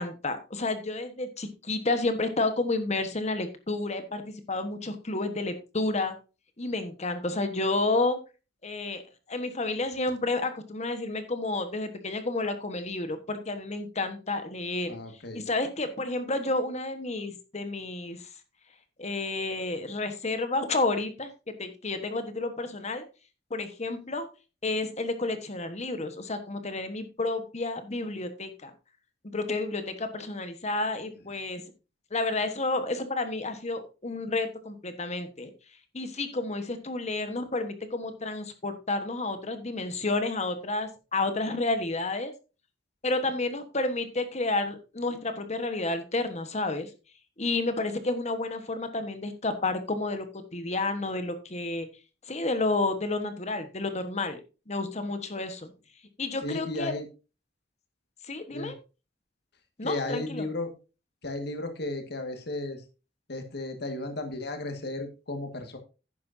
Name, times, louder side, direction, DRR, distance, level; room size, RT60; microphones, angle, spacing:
voice 1, 0.0-6.1 6.6-8.2 8.6-9.0 9.3-15.0 15.3-18.3 19.0-23.0 23.5-24.3 24.6-28.7 29.3-31.6 32.1-35.5 35.9-42.3 43.0-46.9 47.4-51.9 52.3-54.4 54.7-55.7 56.2-56.9 58.3-58.7 59.8-60.5, left 2 dB, 35° left, 9 dB, 1.3 m, -30 dB
voice 2, 14.9-15.4 56.4-57.1 58.5-58.7 59.8-60.7 61.2-62.8 63.3-65.8, left 2 dB, 60° left, 5 dB, 1.9 m, -34 dB
11.0 x 9.4 x 2.7 m, 0.31 s
head